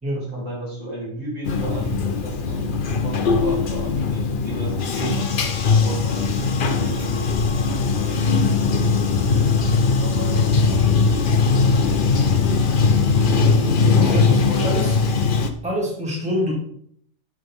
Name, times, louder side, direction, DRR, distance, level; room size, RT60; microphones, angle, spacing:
voice 1, 0.2-2.7 3.0-6.3 6.8-8.4 10.0-10.5 13.1-14.8, right 2 dB, 60° right, -5 dB, 3.7 m, -33 dB
Bathtub (filling or washing), 1.4-15.5, left 4 dB, 45° left, 0.8 m, -20 dB
voice 2, 13.4-14.9 15.6-16.5, left 1 dB, 5° right, -3 dB, 2.2 m, -26 dB
11.0 x 6.3 x 3.6 m, 0.65 s
omnidirectional pair, 1.5 m